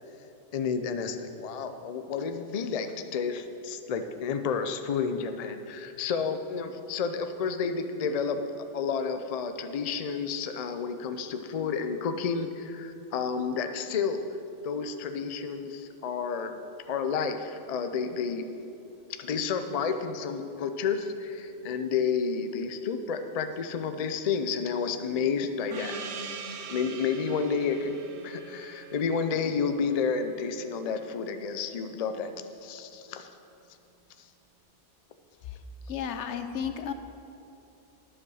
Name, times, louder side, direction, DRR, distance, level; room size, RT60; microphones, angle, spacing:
voice 1, 0.5-14.2 14.6-16.6 16.9-18.4 19.2-26.0 26.7-28.0 28.2-32.3 32.6-33.3, left 5 dB, 45° left, 7 dB, 0.5 m, -30 dB
Gong, 25.7-30.8, right 5 dB, 85° right, 1.1 m, -42 dB
voice 2, 35.4-36.9, left 7 dB, 80° left, 8 dB, 1.0 m, -34 dB
10.0 x 7.4 x 6.3 m, 2.8 s
omnidirectional pair, 1.2 m